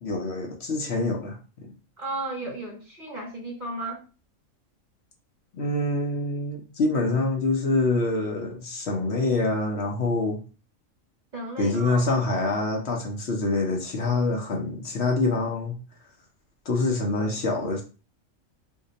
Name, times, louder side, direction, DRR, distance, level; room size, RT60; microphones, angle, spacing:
voice 1, 0.0-1.4 5.6-10.4 11.6-15.8 16.7-17.8, left 2 dB, 60° left, 1 dB, 0.9 m, -25 dB
voice 2, 2.0-4.0 11.3-12.1, right 2 dB, 40° right, -1 dB, 0.9 m, -34 dB
2.8 x 2.1 x 3.8 m, 0.34 s
omnidirectional pair, 1.4 m